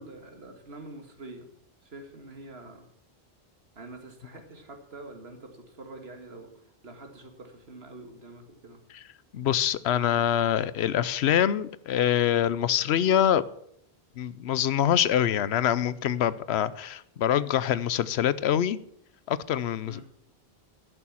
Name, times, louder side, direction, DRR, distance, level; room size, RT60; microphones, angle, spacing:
voice 1, 0.0-1.5 1.8-2.9 3.8-8.8 19.8-20.0, right 2 dB, 75° right, 5 dB, 2.1 m, -46 dB
voice 2, 9.3-13.4 14.2-18.8 19.3-20.0, left 10 dB, 90° left, 17 dB, 0.9 m, -25 dB
12.5 x 6.8 x 7.2 m, 0.71 s
omnidirectional pair, 1.1 m